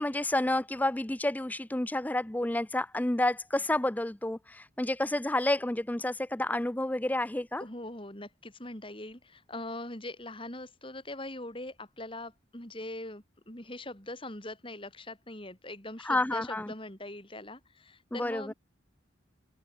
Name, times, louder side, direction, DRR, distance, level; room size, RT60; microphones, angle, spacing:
voice 1, 0.0-7.6 16.0-16.7 18.1-18.5, left 1 dB, 10° left, 0.5 m, -30 dB
voice 2, 7.6-18.5, left 1 dB, 25° left, 3.9 m, -42 dB
head